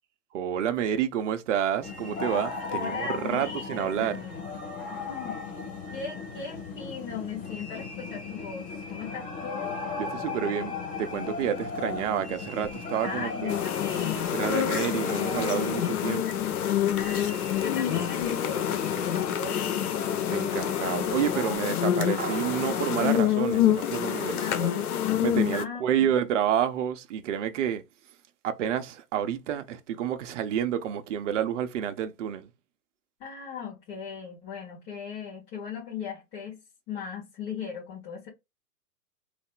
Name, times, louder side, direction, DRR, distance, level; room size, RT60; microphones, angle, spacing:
voice 1, 0.3-4.2 10.0-13.5 14.3-16.2 20.3-24.7 25.2-27.8 28.4-32.5, right 9 dB, 50° right, 0.7 m, -29 dB
sound 1, 1.8-21.6, left 4 dB, 15° left, 0.9 m, -37 dB
voice 2, 2.7-4.4 4.9-5.6 5.9-9.7 13.0-15.3 16.2-16.4 17.0-20.0 24.4-24.9 25.5-26.1 33.2-38.3, left 6 dB, 35° left, 1.5 m, -38 dB
sound 2, 13.5-25.6, left 10 dB, 65° left, 0.7 m, -27 dB
sound 3, 22.2-24.9, right 6 dB, 15° right, 0.4 m, -42 dB
3.2 x 2.0 x 3.6 m
hypercardioid pair, 115°, 48 cm